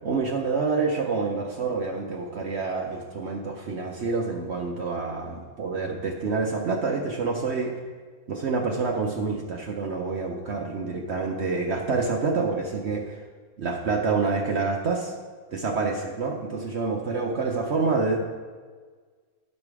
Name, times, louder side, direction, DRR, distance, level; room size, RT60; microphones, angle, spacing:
voice 1, 0.0-7.8 8.3-13.2 13.6-15.1 15.5-18.2, right 4 dB, 70° right, 1 dB, 0.6 m, -27 dB
10.5 x 5.2 x 4.7 m, 1.5 s
omnidirectional pair, 2.1 m